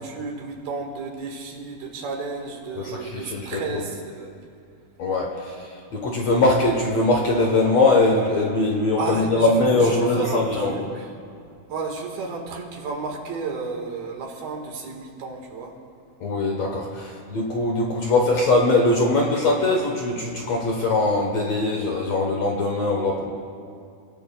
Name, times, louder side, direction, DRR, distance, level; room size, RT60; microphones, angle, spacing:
voice 1, 0.0-4.3 9.0-11.0 11.7-15.7, right 4 dB, 75° right, 1 dB, 3.5 m, -32 dB
voice 2, 2.8-3.8 5.0-10.8 16.2-23.3, left 2 dB, 60° left, 0 dB, 1.9 m, -21 dB
30.0 x 16.5 x 2.3 m, 2.3 s
omnidirectional pair, 4.4 m